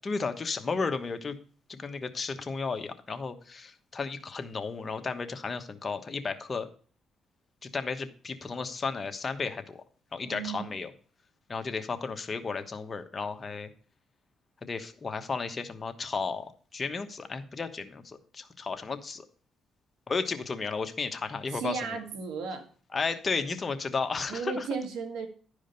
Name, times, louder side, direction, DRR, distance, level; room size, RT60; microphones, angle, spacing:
voice 1, 0.0-1.4 1.7-6.7 7.6-9.8 10.1-10.9 11.5-13.7 14.6-19.2 20.1-22.0 22.9-24.7, left 4 dB, 35° left, 7 dB, 1.2 m, -33 dB
voice 2, 10.2-10.7 21.5-22.6 24.3-25.3, right 5 dB, 90° right, 6 dB, 1.8 m, -35 dB
11.5 x 5.0 x 5.3 m, 0.43 s
cardioid pair, 90°, 0 cm